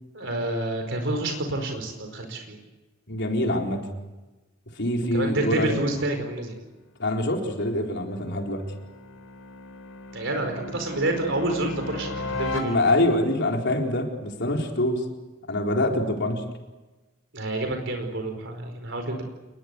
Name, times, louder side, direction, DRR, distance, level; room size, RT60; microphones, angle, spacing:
voice 1, 0.1-2.6 5.1-6.5 10.1-12.8 17.3-19.2, right 1 dB, 65° right, 5 dB, 4.7 m, -28 dB
voice 2, 3.1-3.8 4.8-5.7 7.0-8.6 12.6-15.1 15.5-16.4, left 1 dB, 60° left, 2 dB, 4.4 m, -25 dB
sound 1, 6.9-13.3, left 2 dB, 80° left, 4.2 m, -37 dB
28.5 x 21.5 x 8.4 m, 1.1 s
head